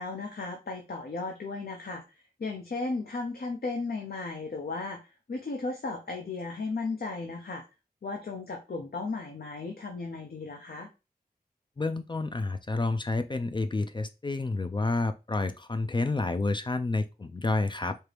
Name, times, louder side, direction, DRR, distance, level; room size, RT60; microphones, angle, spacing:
voice 1, 0.0-2.0 2.4-7.6 8.0-10.9, left 3 dB, 70° left, 2 dB, 0.7 m, -35 dB
voice 2, 11.8-18.0, left 3 dB, 30° left, 9 dB, 0.3 m, -29 dB
4.4 x 2.5 x 3.3 m, 0.28 s
wide cardioid pair, 75°, 16 cm